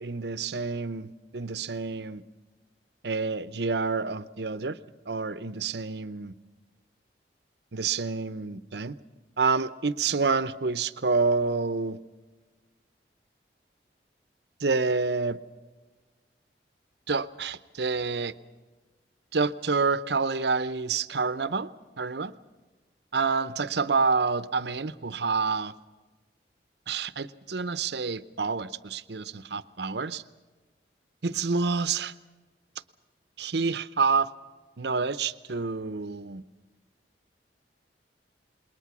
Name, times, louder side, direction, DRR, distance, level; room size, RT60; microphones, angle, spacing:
voice 1, 0.0-2.2 3.0-4.8 5.1-6.3 7.7-9.0 9.4-12.0 14.6-15.4 17.1-18.3 19.3-21.7 22.0-22.3 23.1-25.7 26.9-30.2 31.2-32.1 33.4-34.3 34.8-36.4, right 4 dB, 75° right, 15 dB, 0.8 m, -28 dB
28.0 x 21.5 x 6.1 m, 1.3 s
head